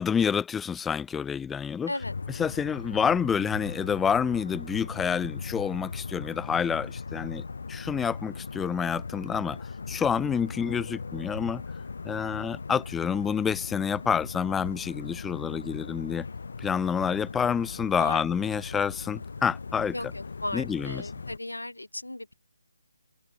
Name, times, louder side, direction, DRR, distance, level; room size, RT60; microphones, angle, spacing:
voice 1, 0.0-1.9 2.4-7.4 7.7-9.6 9.9-11.6 12.0-16.2 16.6-19.9 20.5-21.0, left 7 dB, 5° left, 0.6 m, -28 dB
voice 2, 1.9-2.2 12.4-12.7 18.0-18.2 19.9-22.3, left 1 dB, 85° left, 4.5 m, -36 dB
sound 1, 2.0-21.4, left 4 dB, 60° left, 6.5 m, -39 dB
figure-of-eight pair, 150°, 0 cm